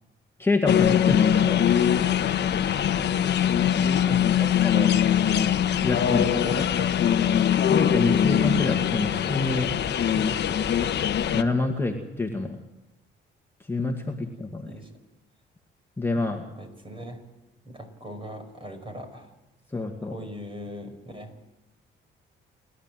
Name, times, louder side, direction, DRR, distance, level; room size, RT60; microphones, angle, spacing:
voice 1, 0.4-1.2 1.5-1.6 4.1-4.2 5.8-6.3 7.7-9.7 10.2-10.3 11.3-12.6 13.7-14.7 16.0-16.4 19.7-20.2, left 2 dB, 10° left, 1 dB, 2.0 m, -27 dB
sound 1, 0.7-11.4, left 9 dB, 60° left, 1.1 m, -22 dB
voice 2, 1.1-1.8 4.0-4.9 6.2-7.2 10.2-10.9 14.6-14.9 16.6-17.2 17.7-19.3 20.0-21.3, right 1 dB, 25° right, 6 dB, 5.3 m, -39 dB
29.0 x 11.5 x 7.7 m, 0.99 s
cardioid pair, 90°, 20 cm